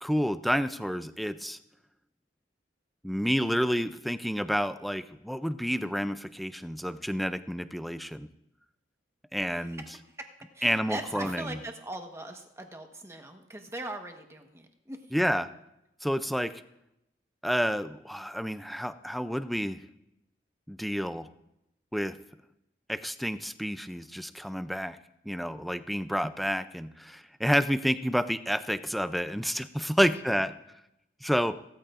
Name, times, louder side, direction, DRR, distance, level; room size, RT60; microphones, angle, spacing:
voice 1, 0.0-1.6 3.0-8.3 9.3-9.8 10.6-11.5 15.1-15.5 16.0-16.5 17.4-19.8 20.7-21.3 21.9-22.2 22.9-25.0 25.3-30.5 31.2-31.6, equal, ahead, 11 dB, 0.4 m, -29 dB
voice 2, 10.5-15.0 30.0-30.2, right 1 dB, 15° right, 4 dB, 1.3 m, -40 dB
17.5 x 13.5 x 2.5 m, 0.86 s
head